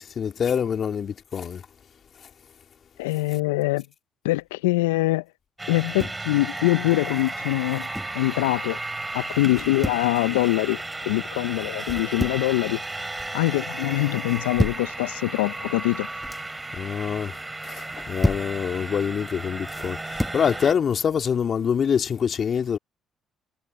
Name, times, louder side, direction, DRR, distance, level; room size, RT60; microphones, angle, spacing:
voice 1, 0.0-1.6 16.7-17.4 17.6-22.8, left 7 dB, 55° left, 2.2 m, -25 dB
voice 2, 3.0-3.8 4.2-5.2 5.7-7.9 8.1-8.8 9.1-12.8 13.3-16.1, left 20 dB, 85° left, 0.6 m, -24 dB
sound 1, 5.6-20.7, right 2 dB, 20° right, 6.1 m, -34 dB
sound 2, 5.7-6.3 7.6-8.2 9.5-10.1 11.8-12.5 12.9-13.4 14.2-14.9 16.0-16.5 17.8-18.5 19.7-20.4, left 1 dB, 10° left, 1.6 m, -30 dB
hypercardioid pair, 45°, 0 cm